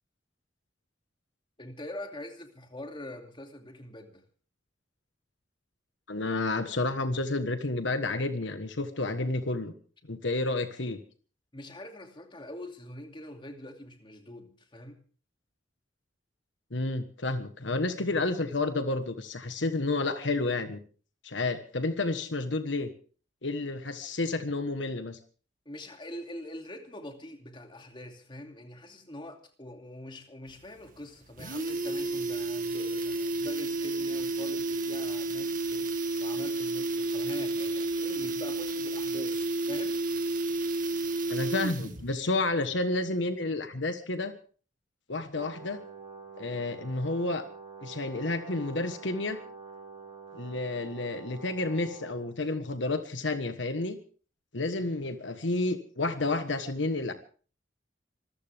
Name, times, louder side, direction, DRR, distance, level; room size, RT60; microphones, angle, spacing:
voice 1, 1.6-4.2 11.5-15.0 25.7-35.9 36.2-40.0, left 1 dB, 25° left, 2.7 m, -44 dB
voice 2, 6.1-9.7 10.1-11.0 16.7-20.8 21.2-22.9 23.4-25.2 41.3-44.4 45.1-45.8 46.4-47.5 47.8-49.4 50.3-54.0 54.5-57.1, left 2 dB, 70° left, 1.4 m, -30 dB
sound 1, 30.5-30.6 30.9-31.0 31.2-42.1 42.4-42.5, right 2 dB, 45° right, 1.8 m, -31 dB
Brass instrument, 45.3-52.3, right 4 dB, 25° right, 8.0 m, -46 dB
25.5 x 14.5 x 3.5 m
head